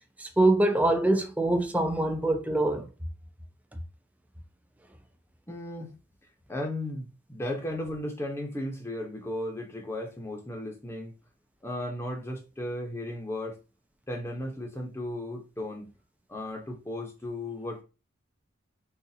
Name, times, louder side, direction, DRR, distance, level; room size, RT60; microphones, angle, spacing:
voice 1, 0.2-2.9, right 2 dB, 10° right, 0.5 m, -24 dB
voice 2, 5.5-6.0 6.5-11.1 11.6-13.6 14.1-15.9 16.3-17.8, left 1 dB, 15° left, 0.8 m, -35 dB
4.0 x 2.5 x 2.7 m
head